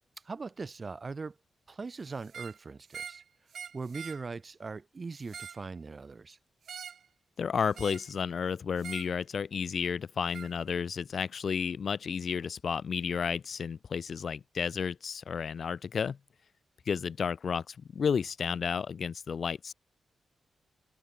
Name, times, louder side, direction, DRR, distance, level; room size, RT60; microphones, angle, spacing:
voice 1, 0.2-1.4 1.7-3.2 3.7-6.4, right 4 dB, 30° right, 1.1 m, -40 dB
sound 1, 2.2-2.6 2.9-3.2 3.5-4.2 5.1-5.6 6.7-7.1 7.7-8.1 8.8-9.1 10.3-10.5, right 7 dB, 55° right, 1.3 m, -44 dB
voice 2, 7.4-16.2 16.9-19.7, left 6 dB, 45° left, 0.5 m, -32 dB
wide cardioid pair, 170°, 0 cm